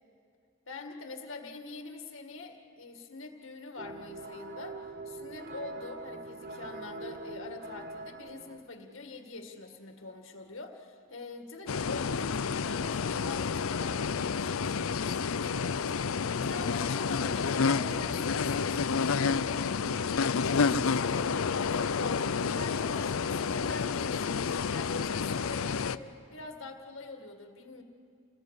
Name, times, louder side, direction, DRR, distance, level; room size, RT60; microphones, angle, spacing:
voice 1, 0.7-27.8, left 3 dB, 70° left, 4 dB, 2.0 m, -44 dB
sound 1, 3.8-8.7, right 2 dB, 55° right, 1.0 m, -43 dB
sound 2, 11.7-26.0, left 5 dB, 85° left, 0.6 m, -30 dB
28.5 x 20.0 x 8.2 m, 2.4 s
head